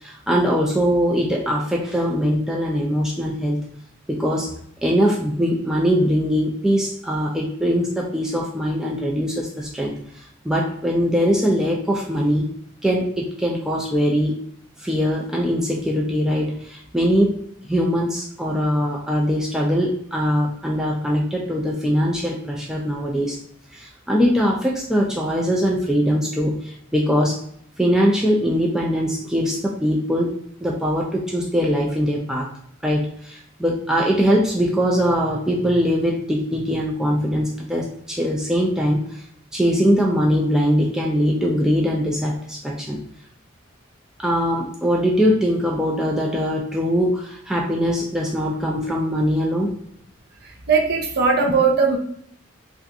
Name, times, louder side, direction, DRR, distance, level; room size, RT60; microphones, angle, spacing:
voice 1, 0.0-3.6 4.1-4.5 4.8-10.0 10.4-12.5 12.8-14.4 14.8-17.4 17.7-23.4 23.7-27.4 27.8-32.5 32.8-39.1 39.5-43.0 44.2-49.7, equal, 5° right, -3 dB, 0.4 m, -21 dB
voice 2, 50.7-52.0, right 4 dB, 50° right, 0 dB, 0.7 m, -18 dB
3.3 x 2.5 x 2.7 m, 0.67 s
head